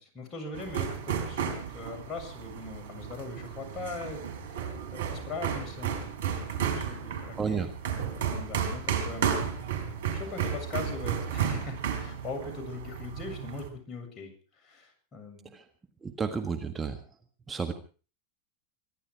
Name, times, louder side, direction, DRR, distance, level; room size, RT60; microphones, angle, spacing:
voice 1, 0.0-4.2 4.5-5.9 6.2-7.7 8.3-9.3 10.1-15.5, left 3 dB, 30° left, 3 dB, 7.3 m, -40 dB
sound 1, 0.5-13.7, right 8 dB, 70° right, 3.6 m, -33 dB
voice 2, 7.4-7.7 15.5-15.6 16.0-17.0 17.5-17.7, right 5 dB, 20° right, 6 dB, 1.7 m, -31 dB
24.5 x 11.5 x 4.7 m, 0.38 s
hypercardioid pair, 95°, 0 cm